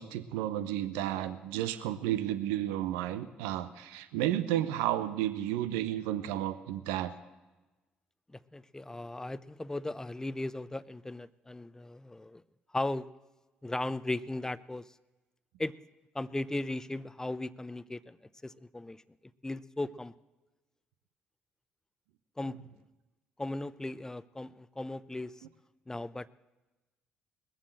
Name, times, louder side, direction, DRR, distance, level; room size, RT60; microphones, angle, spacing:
voice 1, 0.0-7.1, right 12 dB, 80° right, 11 dB, 0.8 m, -32 dB
voice 2, 8.3-12.4 12.7-13.1 13.6-14.9 15.6-15.8 16.1-18.2 18.4-19.0 19.4-20.1 22.4-22.6 23.4-25.4 25.9-26.3, left 2 dB, 15° left, 17 dB, 0.6 m, -37 dB
20.5 x 7.4 x 7.8 m, 1.1 s
hypercardioid pair, 55°, 4 cm